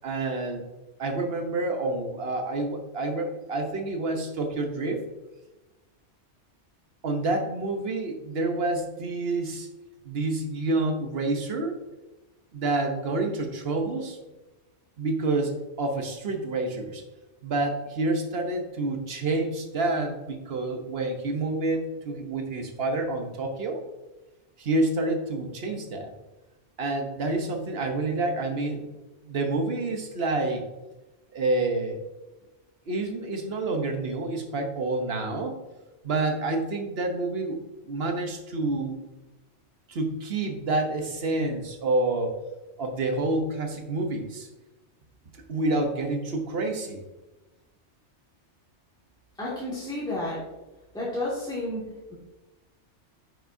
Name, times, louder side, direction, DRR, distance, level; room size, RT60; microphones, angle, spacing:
voice 1, 0.0-0.6 1.0-5.0 7.0-9.7 10.0-11.8 12.5-14.2 15.0-15.5 15.8-17.0 17.4-23.8 24.6-26.1 26.8-28.9 29.3-30.6 31.3-32.0 32.9-35.5 36.0-39.0 39.9-42.4 42.8-44.5 45.5-47.0, right 2 dB, 60° right, 4 dB, 1.2 m, -28 dB
voice 2, 49.4-50.4 50.9-51.8, left 1 dB, 5° left, -9 dB, 2.1 m, -31 dB
9.1 x 6.2 x 2.7 m, 1.1 s
omnidirectional pair, 1.2 m